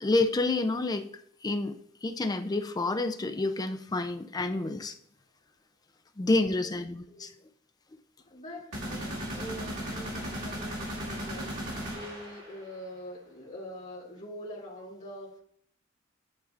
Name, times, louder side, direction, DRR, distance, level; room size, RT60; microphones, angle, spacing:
voice 1, 0.0-1.1 1.4-5.0 6.2-7.3, left 2 dB, 20° left, 9 dB, 0.4 m, -29 dB
voice 2, 6.4-6.7 7.1-7.3 8.2-15.4, equal, 35° left, -5 dB, 1.9 m, -44 dB
sound 1, 8.7-12.7, equal, 85° right, 2.2 m, -36 dB
9.4 x 4.6 x 2.5 m, 0.63 s
head